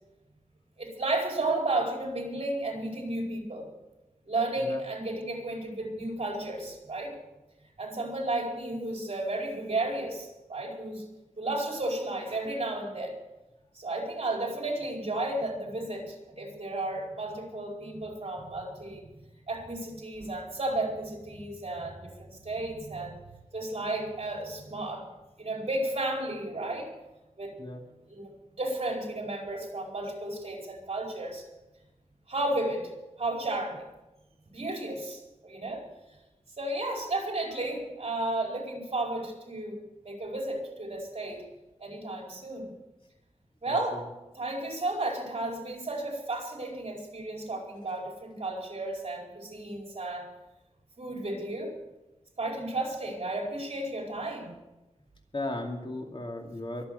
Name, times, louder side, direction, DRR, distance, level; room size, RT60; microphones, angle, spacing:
voice 1, 0.8-3.7 4.3-7.2 7.8-11.1 11.4-13.2 13.7-19.1 19.5-23.2 23.5-25.1 25.4-26.9 27.4-27.5 28.1-28.3 28.6-31.5 32.3-32.9 33.2-33.9 34.5-35.9 36.6-39.8 40.0-41.5 41.8-42.7 43.6-44.0 44.3-50.3 51.0-51.8 52.4-54.6, right 2 dB, 55° right, 0 dB, 4.8 m, -33 dB
voice 2, 43.7-44.0 55.3-56.8, left 2 dB, 45° left, 2 dB, 2.4 m, -36 dB
23.0 x 8.1 x 6.9 m, 1.0 s
wide cardioid pair, 85°, 12 cm